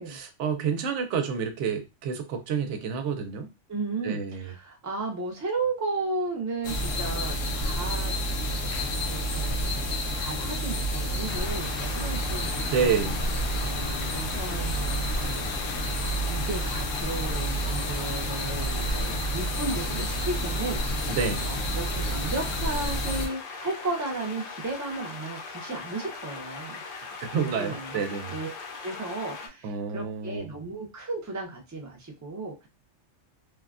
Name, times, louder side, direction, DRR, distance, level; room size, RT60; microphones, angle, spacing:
voice 1, 0.0-3.5 4.0-4.5 12.7-13.2 21.1-21.5 27.2-28.4 29.6-30.5, right 6 dB, 75° right, 0.9 m, -29 dB
voice 2, 3.7-8.1 9.1-9.8 10.1-13.1 13.5-15.5 16.3-21.2 21.4-26.8 27.5-28.0 28.3-28.5 28.8-32.7, right 3 dB, 30° right, 0.3 m, -34 dB
sound 1, 6.6-23.3, equal, 85° left, 1.0 m, -29 dB
sound 2, 11.3-29.5, left 4 dB, 60° left, 0.7 m, -40 dB
3.1 x 2.2 x 2.4 m
omnidirectional pair, 1.3 m